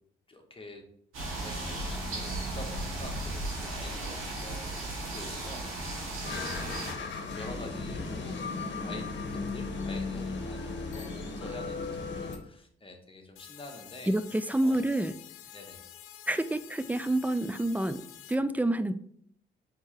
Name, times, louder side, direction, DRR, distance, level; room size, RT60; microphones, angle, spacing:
voice 1, 0.3-0.8 1.4-14.1 14.6-14.9 15.5-15.9, left 2 dB, 25° left, 2 dB, 1.3 m, -47 dB
sound 1, 1.1-6.9, right 2 dB, 80° right, 1.9 m, -35 dB
sound 2, 6.3-12.4, left 3 dB, 60° left, 1.0 m, -36 dB
sound 3, 13.4-18.4, left 11 dB, 80° left, 0.5 m, -49 dB
voice 2, 14.1-15.1 16.3-18.9, right 1 dB, 10° right, 12 dB, 0.4 m, -28 dB
4.4 x 3.7 x 3.2 m, 0.67 s
supercardioid pair, 50°, 21 cm